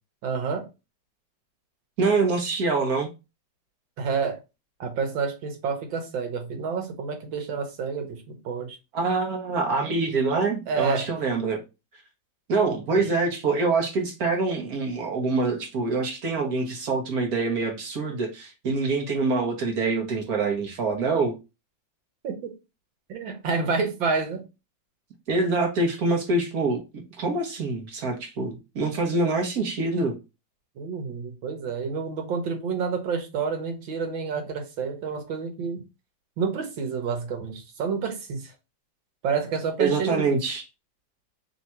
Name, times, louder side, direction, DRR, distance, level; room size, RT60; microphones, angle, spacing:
voice 1, 0.2-0.7 4.0-4.4 4.8-8.8 10.7-11.1 12.9-13.1 22.2-22.5 23.1-24.5 30.8-35.8 36.4-38.5 39.2-40.4, right 5 dB, 80° right, 1.7 m, -29 dB
voice 2, 2.0-3.1 8.9-11.6 12.5-21.4 25.3-30.2 39.8-40.6, right 3 dB, 55° right, 1.2 m, -25 dB
3.5 x 2.8 x 4.2 m
omnidirectional pair, 2.1 m